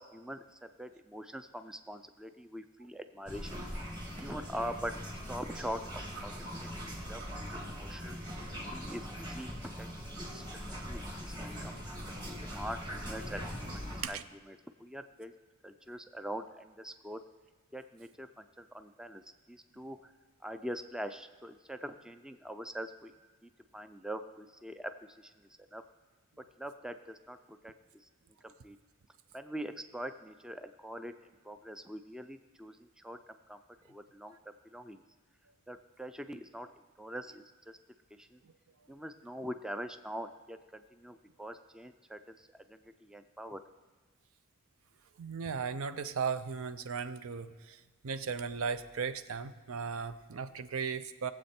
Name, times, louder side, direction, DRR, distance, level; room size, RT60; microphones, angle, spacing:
voice 1, 0.0-3.6 4.2-4.9 5.3-8.2 8.7-9.5 9.8-10.4 10.7-11.8 12.1-12.2 12.5-14.2 14.5-15.3 15.6-17.2 17.7-19.2 19.5-20.1 20.4-23.1 23.4-25.3 25.7-25.8 26.6-27.7 28.4-28.8 29.3-31.1 31.4-33.2 33.5-33.6 33.9-34.4 34.7-35.0 35.7-36.7 37.0-37.8 38.1-38.4 38.9-43.6, equal, 5° right, 9 dB, 0.4 m, -43 dB
sound 1, 3.3-14.0, equal, 20° right, 1.9 m, -41 dB
voice 2, 45.2-51.3, right 6 dB, 75° right, 12 dB, 0.6 m, -36 dB
19.0 x 7.7 x 4.3 m, 1.3 s
head